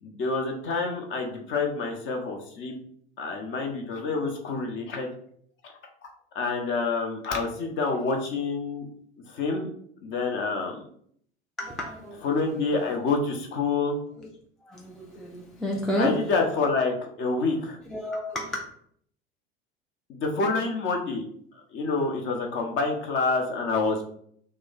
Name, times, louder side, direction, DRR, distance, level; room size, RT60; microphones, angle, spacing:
voice 1, 0.0-2.8 3.2-5.1 6.0-6.1 6.3-8.9 9.3-9.7 10.0-10.8 12.2-14.0 16.0-17.8 20.1-21.2 21.7-24.0, left 3 dB, 35° left, 3 dB, 0.7 m, -27 dB
voice 2, 11.6-12.3 12.8-13.1 14.2-14.3 14.6-16.2 17.9-18.7, equal, ahead, -1 dB, 0.3 m, -31 dB
3.0 x 2.1 x 3.8 m, 0.64 s
figure-of-eight pair, 70°, 33 cm